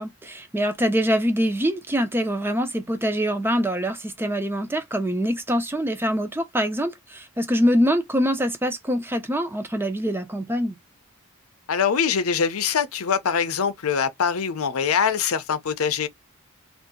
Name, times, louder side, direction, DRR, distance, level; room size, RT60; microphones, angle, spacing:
voice 1, 0.0-10.8, equal, 10° right, 0.6 m, -24 dB
voice 2, 11.7-16.1, left 6 dB, 80° left, 0.6 m, -23 dB
2.7 x 2.5 x 3.6 m
head